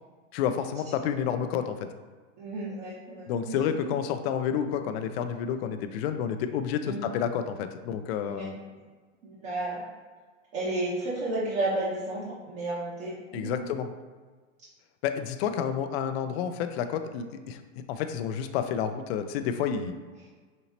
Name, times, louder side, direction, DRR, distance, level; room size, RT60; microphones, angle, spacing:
voice 1, 0.3-1.8 3.3-8.5 13.3-13.9 15.0-17.6 17.9-20.0, left 8 dB, 55° left, 8 dB, 0.5 m, -30 dB
voice 2, 2.4-3.9 6.9-7.0 8.2-8.5 9.2-9.8 10.5-13.6, right 2 dB, 45° right, -7 dB, 1.2 m, -32 dB
5.2 x 2.7 x 2.9 m, 1.4 s
hypercardioid pair, 115°, 38 cm